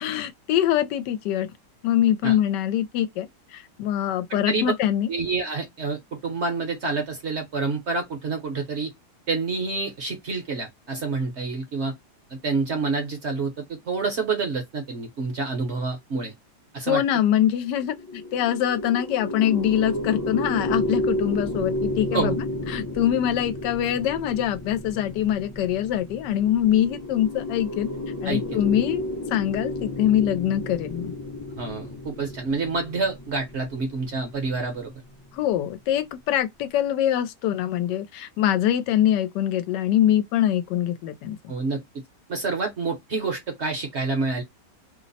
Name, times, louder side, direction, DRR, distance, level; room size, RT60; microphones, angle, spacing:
voice 1, 0.0-1.5 1.8-5.1 16.9-22.4 22.7-27.9 28.2-29.0 29.3-31.1 35.3-41.4, left 11 dB, 85° left, 1.2 m, -24 dB
voice 2, 4.3-4.7 5.1-8.9 9.3-11.9 12.3-16.3 16.7-17.0 22.1-22.4 28.2-28.6 31.6-34.9 41.5-41.8 42.3-44.4, right 4 dB, 50° right, 0.9 m, -28 dB
sound 1, 17.8-35.3, left 1 dB, 20° left, 0.6 m, -32 dB
3.0 x 2.1 x 3.9 m
omnidirectional pair, 1.8 m